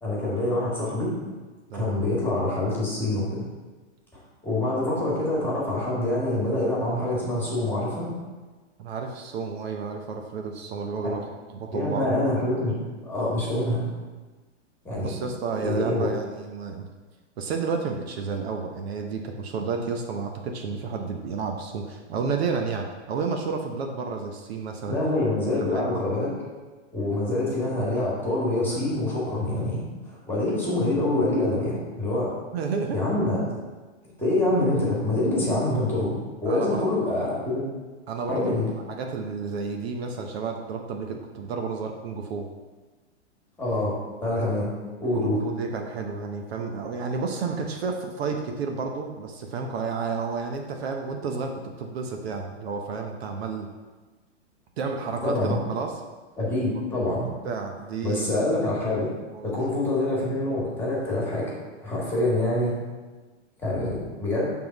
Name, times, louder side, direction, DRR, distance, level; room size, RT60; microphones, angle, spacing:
voice 1, 0.0-1.1 1.7-3.4 4.1-8.1 11.0-11.1 11.7-12.8 13.0-13.8 14.8-15.1 15.5-16.1 24.8-26.3 26.9-29.8 30.1-32.3 32.9-33.4 34.0-37.6 38.3-38.7 43.6-44.7 45.0-45.4 55.2-55.6 56.4-57.3 58.0-59.1 59.4-61.5 61.8-62.8 63.6-64.5, left 1 dB, 5° left, -5 dB, 1.8 m, -26 dB
voice 2, 1.7-2.0 8.8-12.1 15.0-16.8 17.4-25.0 25.5-25.9 32.5-33.0 36.5-36.8 38.1-38.6 38.9-42.5 45.1-53.7 54.8-56.0 57.2-58.2 59.3-59.6, right 5 dB, 60° right, 3 dB, 0.9 m, -31 dB
6.0 x 3.7 x 5.9 m, 1.3 s
hypercardioid pair, 145°, 35 cm